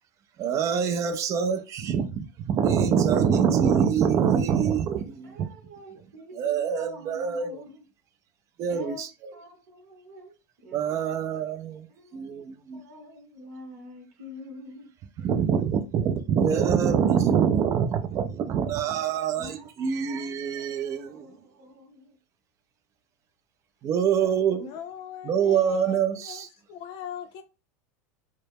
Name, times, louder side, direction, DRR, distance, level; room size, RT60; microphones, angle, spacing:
voice 1, 0.4-5.5 6.3-7.7 8.6-9.4 10.7-11.9 12.1-12.8 15.2-21.3 23.8-24.7 25.3-26.5, right 7 dB, 40° right, 0.4 m, -25 dB
voice 2, 5.2-7.7 8.7-9.0 9.3-10.3 10.6-11.1 12.0-12.5 12.7-14.9 19.4-22.0 24.2-24.3, left 1 dB, 65° right, 0.9 m, -46 dB
voice 3, 24.5-27.4, left 9 dB, 55° left, 0.5 m, -40 dB
2.2 x 2.0 x 3.3 m
hypercardioid pair, 105°, 8 cm